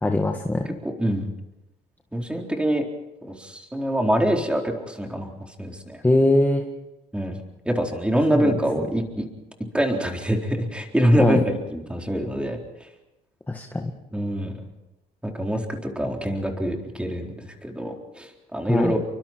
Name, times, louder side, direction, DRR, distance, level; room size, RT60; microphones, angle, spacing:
voice 1, 0.0-0.8 6.0-6.6 8.3-8.5 11.2-11.4 13.5-13.9 18.7-18.9, left 2 dB, 10° left, 4 dB, 1.7 m, -21 dB
voice 2, 0.8-1.3 2.1-2.8 3.2-5.3 5.6-6.0 7.1-7.4 7.6-9.3 9.7-12.9 14.1-14.6 15.2-19.0, equal, 5° right, 2 dB, 4.1 m, -25 dB
29.0 x 24.5 x 4.6 m, 0.96 s
cardioid pair, 110°, 17 cm